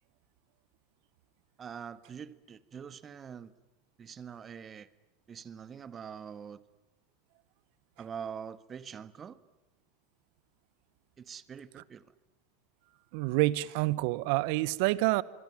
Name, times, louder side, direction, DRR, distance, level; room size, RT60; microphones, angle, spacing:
voice 1, 1.6-3.5 4.0-4.9 5.3-6.6 8.0-9.4 11.2-12.0, right 7 dB, 30° right, 1.6 m, -44 dB
voice 2, 13.1-15.2, right 19 dB, 65° right, 1.0 m, -27 dB
24.5 x 24.5 x 9.4 m
hypercardioid pair, 90°, 0 cm